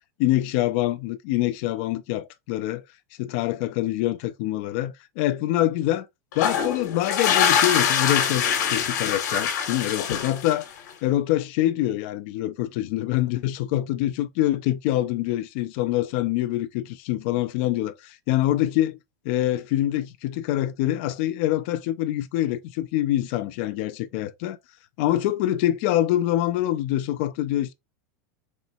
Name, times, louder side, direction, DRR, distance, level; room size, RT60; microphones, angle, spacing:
voice 1, 0.2-2.8 3.2-6.1 6.4-10.7 11.0-19.0 19.2-24.6 25.0-27.7, left 14 dB, 40° left, 0.4 m, -25 dB
sound 1, 6.3-10.9, left 8 dB, 70° left, 1.3 m, -24 dB
4.3 x 3.2 x 2.6 m
supercardioid pair, 180°, 10 cm